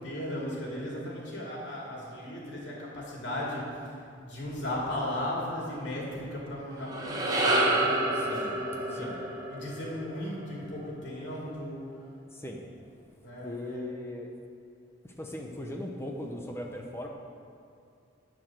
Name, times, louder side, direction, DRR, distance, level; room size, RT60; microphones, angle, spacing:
voice 1, 0.0-3.7 4.2-11.9 13.2-13.9, left 1 dB, 70° left, -4 dB, 2.8 m, -36 dB
sound 1, 6.7-11.2, right 1 dB, 20° right, 1.1 m, -29 dB
voice 2, 8.1-8.6 8.9-9.2 12.3-12.6 13.4-14.3 15.2-17.1, left 1 dB, 15° left, 1 dB, 0.7 m, -38 dB
11.0 x 5.0 x 7.8 m, 2.5 s
head